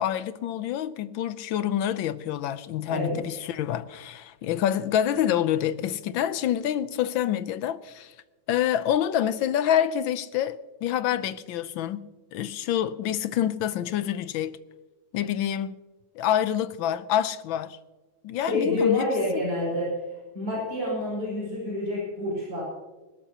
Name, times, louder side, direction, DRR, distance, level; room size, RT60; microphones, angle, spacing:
voice 1, 0.0-8.1 8.5-14.6 15.1-15.8 16.1-17.8 18.2-19.1 19.3-19.4, left 10 dB, 90° left, 1.5 m, -27 dB
voice 2, 18.4-20.0 20.3-22.6, left 2 dB, 60° right, 5.8 m, -28 dB
28.0 x 13.0 x 2.9 m
omnidirectional pair, 2.1 m